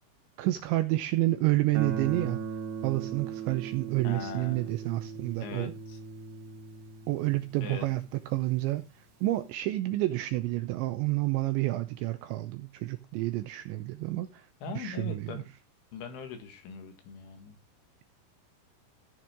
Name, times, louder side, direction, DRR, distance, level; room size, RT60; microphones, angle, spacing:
voice 1, 0.4-2.4 2.8-5.7 7.1-8.8 9.2-14.4 14.8-15.4, right 17 dB, 85° right, 2.6 m, -29 dB
Guitar, 1.7-8.5, right 6 dB, 50° right, 3.1 m, -39 dB
voice 2, 4.0-4.7 5.4-6.0 7.6-7.9 14.6-15.5 15.9-17.6, left 5 dB, 70° left, 3.9 m, -40 dB
15.0 x 6.1 x 4.5 m
omnidirectional pair, 6.0 m